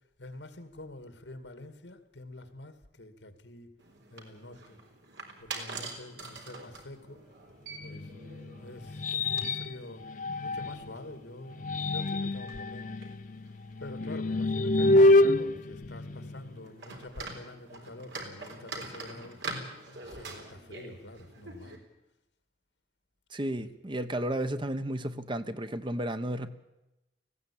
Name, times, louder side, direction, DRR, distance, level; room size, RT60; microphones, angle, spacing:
voice 1, 0.2-3.7 4.1-4.8 5.4-7.2 7.8-8.1 8.6-13.0 13.8-19.4 19.8-21.8, left 1 dB, 90° left, 2.3 m, -46 dB
sound 1, 3.8-21.8, right 3 dB, 80° right, 3.9 m, -45 dB
sound 2, 7.8-11.0 11.5-16.7, left 1 dB, 45° left, 0.6 m, -27 dB
voice 2, 23.3-26.5, right 1 dB, 30° right, 1.0 m, -33 dB
19.0 x 16.0 x 8.6 m
head